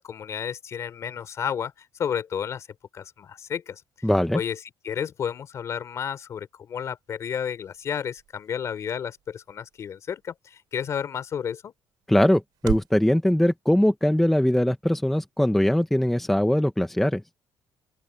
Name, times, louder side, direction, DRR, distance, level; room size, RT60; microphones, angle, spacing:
voice 1, 0.0-2.7 2.9-4.1 4.3-11.7, left 8 dB, 40° left, 3.6 m, -32 dB
voice 2, 4.0-4.4 12.1-17.2, left 1 dB, 5° left, 0.9 m, -21 dB
sound 1, 6.7-13.0, right 13 dB, 70° right, 7.4 m, -41 dB
open air
cardioid pair, 150°, 7 cm